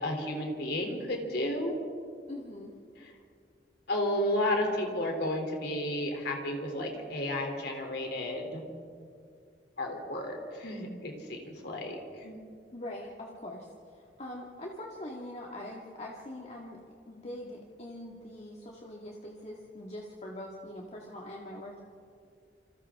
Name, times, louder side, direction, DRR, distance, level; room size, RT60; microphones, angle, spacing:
voice 1, 0.0-1.8 3.9-8.6 9.8-12.4, left 1 dB, 65° left, 2 dB, 3.3 m, -32 dB
voice 2, 2.3-2.7 12.7-21.8, left 1 dB, 40° left, -2 dB, 2.1 m, -43 dB
28.0 x 27.5 x 3.7 m, 2.3 s
head